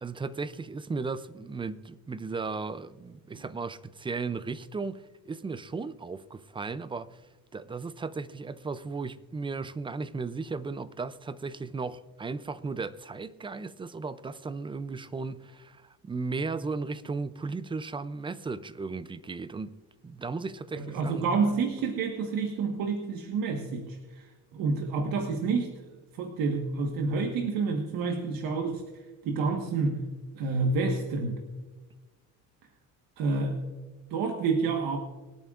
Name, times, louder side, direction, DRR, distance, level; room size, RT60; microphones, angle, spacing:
voice 1, 0.0-7.2 7.5-19.8 20.0-21.2, right 4 dB, 15° right, 0.4 m, -36 dB
voice 2, 20.7-30.1 30.3-31.4 33.2-33.6 34.1-35.0, right 4 dB, 70° right, 1.5 m, -29 dB
26.0 x 8.9 x 2.5 m
cardioid pair, 125°, 35 cm